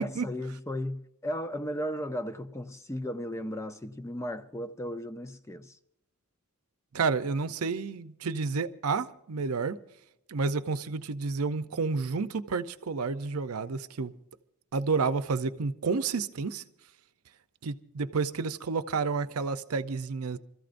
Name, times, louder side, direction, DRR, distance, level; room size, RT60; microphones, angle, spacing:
voice 1, 0.0-5.8, equal, 15° left, 0.5 m, -35 dB
voice 2, 6.9-9.8 10.3-14.1 14.7-16.6 17.6-20.4, right 4 dB, 80° right, 0.6 m, -30 dB
27.5 x 14.0 x 2.6 m
head